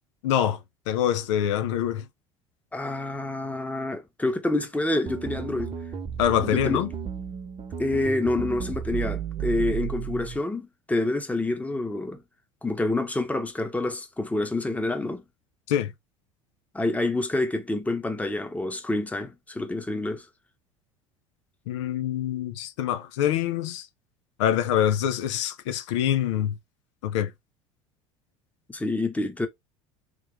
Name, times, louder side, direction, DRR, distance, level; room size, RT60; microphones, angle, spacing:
voice 1, 0.2-0.6 0.9-2.0 6.2-6.9 15.7-15.9 21.7-23.9 24.4-26.6 27.0-27.3, left 10 dB, 75° left, 0.5 m, -25 dB
voice 2, 2.7-5.7 6.4-6.8 7.8-12.2 12.6-15.2 16.7-20.3 28.7-29.5, left 2 dB, 10° left, 0.9 m, -27 dB
sound 1, 5.1-10.4, right 8 dB, 35° right, 0.9 m, -33 dB
3.2 x 3.2 x 3.4 m
hypercardioid pair, 75°, 16 cm